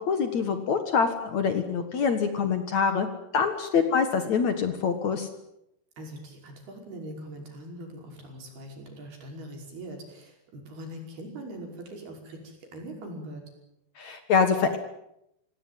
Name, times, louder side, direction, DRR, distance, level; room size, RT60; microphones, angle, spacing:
voice 1, 0.0-3.1 3.3-5.3 14.0-14.8, left 6 dB, 55° left, 9 dB, 2.5 m, -25 dB
voice 2, 6.0-13.4, right 1 dB, 70° right, 2 dB, 7.5 m, -42 dB
26.5 x 18.0 x 9.4 m, 0.82 s
omnidirectional pair, 4.6 m